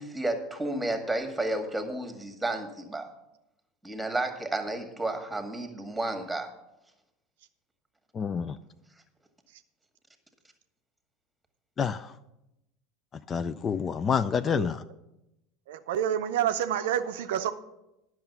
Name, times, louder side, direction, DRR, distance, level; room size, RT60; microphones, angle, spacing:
voice 1, 0.0-3.1 3.8-6.5, right 2 dB, 5° right, 6 dB, 1.6 m, -32 dB
voice 2, 8.2-8.6 11.8-12.1 13.3-14.8, left 6 dB, 30° left, 13 dB, 0.4 m, -28 dB
voice 3, 15.7-17.5, right 10 dB, 65° right, 9 dB, 0.5 m, -28 dB
10.5 x 6.3 x 6.8 m, 0.90 s
figure-of-eight pair, 75°, 0 cm